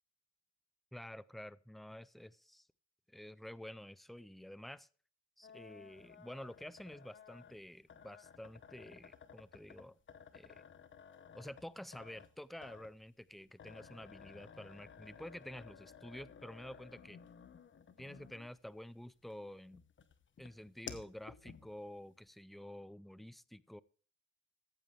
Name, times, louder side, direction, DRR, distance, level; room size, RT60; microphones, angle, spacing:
voice 1, 0.9-2.7 3.1-4.9 5.4-10.0 10.3-10.7 11.3-17.2 18.0-19.8 20.4-23.8, left 1 dB, ahead, 0.4 m, -50 dB
sound 1, 5.4-18.7 19.2-22.0, left 7 dB, 40° left, 1.1 m, -55 dB
14.0 x 8.9 x 3.3 m
cardioid pair, 90°, 30 cm